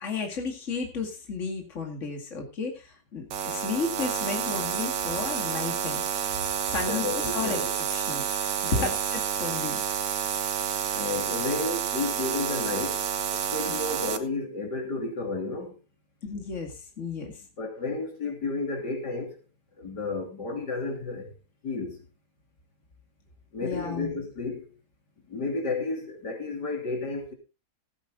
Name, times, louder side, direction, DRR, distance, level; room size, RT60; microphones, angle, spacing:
voice 1, 0.0-6.0 6.7-7.6 7.9-8.2 8.6-9.8 10.7-10.9 16.2-17.3 23.6-24.2, left 4 dB, 45° left, 2.7 m, -33 dB
sound 1, 3.3-14.2, right 8 dB, 85° right, 1.7 m, -29 dB
voice 2, 6.9-7.7 8.6-8.9 10.9-13.0 13.3-15.8 17.6-19.4 19.8-21.3 21.6-22.0 23.5-24.7 25.3-27.3, left 3 dB, 80° left, 3.8 m, -32 dB
15.5 x 9.6 x 3.8 m
omnidirectional pair, 1.8 m